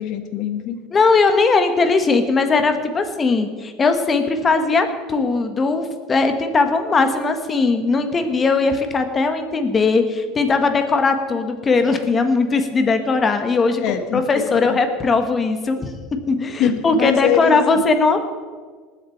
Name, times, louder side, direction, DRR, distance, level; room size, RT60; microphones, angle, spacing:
voice 1, 0.0-0.8 13.8-14.8 16.6-17.8, left 9 dB, 60° left, 8 dB, 1.4 m, -23 dB
voice 2, 0.9-13.8 14.1-15.9 16.3-18.3, left 4 dB, 25° left, 7 dB, 1.5 m, -19 dB
19.5 x 7.6 x 4.5 m, 1.5 s
supercardioid pair, 120°, 0 cm